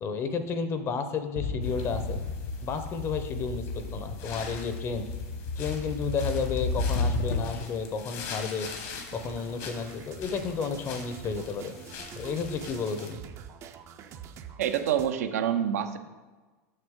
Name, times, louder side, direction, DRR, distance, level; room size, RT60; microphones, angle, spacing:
voice 1, 0.0-2.2 2.6-5.1 5.6-8.7 9.1-11.7 12.2-13.2, left 5 dB, 30° left, 9 dB, 0.7 m, -32 dB
sound 1, 1.4-7.7, left 3 dB, 90° left, 1.0 m, -32 dB
sound 2, 1.6-13.1, left 5 dB, 60° left, 1.3 m, -44 dB
sound 3, 9.1-15.1, right 8 dB, 35° right, 0.5 m, -45 dB
voice 2, 14.6-16.0, right 9 dB, 80° right, 7 dB, 0.7 m, -27 dB
6.7 x 6.5 x 3.6 m, 1.3 s
supercardioid pair, 125°, 8 cm